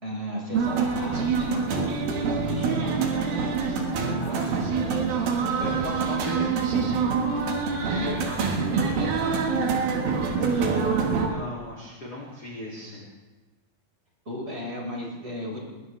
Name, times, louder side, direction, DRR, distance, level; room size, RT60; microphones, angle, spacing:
voice 1, 0.0-3.6 4.0-4.6 7.9-10.8 14.2-15.6, equal, 15° right, -4 dB, 4.9 m, -35 dB
sound 1, 0.5-11.3, right 5 dB, 70° right, 3.3 m, -25 dB
voice 2, 5.4-6.5 10.9-13.0, left 1 dB, 30° left, -3 dB, 2.5 m, -36 dB
21.0 x 20.0 x 3.3 m, 1.3 s
omnidirectional pair, 4.4 m